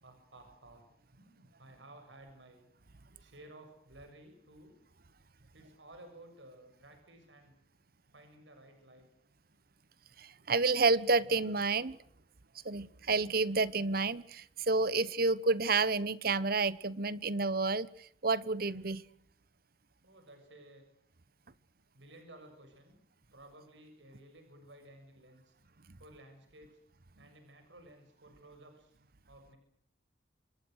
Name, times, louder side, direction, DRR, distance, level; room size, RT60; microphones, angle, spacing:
voice 1, 0.0-0.8 1.1-2.6 3.2-4.7 5.5-7.5 8.1-9.1 20.0-20.8 21.9-23.0 23.3-25.6 26.0-26.8 27.2-28.9 29.3-29.6, right 1 dB, 90° right, 5 dB, 7.1 m, -55 dB
voice 2, 10.2-12.0 12.6-17.9 18.2-19.0, right 3 dB, 55° right, 18 dB, 1.2 m, -30 dB
26.5 x 21.5 x 6.5 m, 0.70 s
head